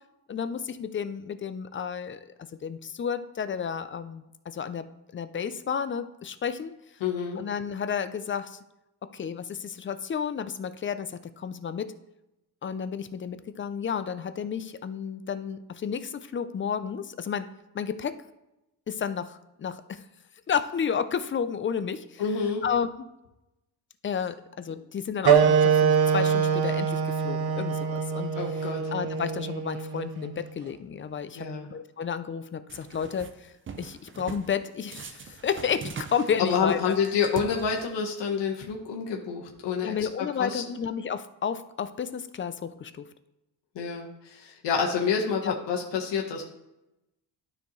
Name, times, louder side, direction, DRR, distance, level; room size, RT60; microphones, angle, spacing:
voice 1, 0.3-2.3 2.6-4.9 5.1-6.8 7.4-8.6 9.1-11.9 12.6-18.2 18.9-20.0 20.5-22.2 22.6-22.9 24.0-28.4 28.9-33.5 33.8-36.9 39.8-43.0 45.4-45.5, left 7 dB, 30° left, 12 dB, 0.4 m, -32 dB
voice 2, 7.0-7.4 22.2-22.6 28.3-28.8 31.4-31.7 36.4-40.8 43.7-46.4, left 6 dB, 85° left, 0 dB, 1.3 m, -28 dB
sound 1, 25.2-30.4, right 7 dB, 65° right, 0.8 m, -24 dB
sound 2, 32.7-33.3 33.7-34.5 34.9-38.1, right 5 dB, 30° right, 0.5 m, -42 dB
12.5 x 4.4 x 3.1 m, 0.92 s
cardioid pair, 125°, 42 cm